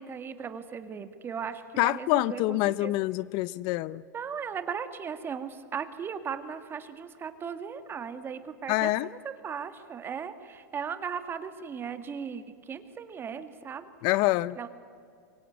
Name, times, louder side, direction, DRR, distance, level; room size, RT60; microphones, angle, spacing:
voice 1, 0.0-2.9 4.1-13.9 14.6-14.7, right 7 dB, 20° right, 9 dB, 1.9 m, -37 dB
voice 2, 1.8-4.0 8.7-9.1 14.0-14.6, left 18 dB, 45° left, 19 dB, 0.6 m, -26 dB
23.5 x 23.5 x 9.4 m, 2.3 s
hypercardioid pair, 125°, 10 cm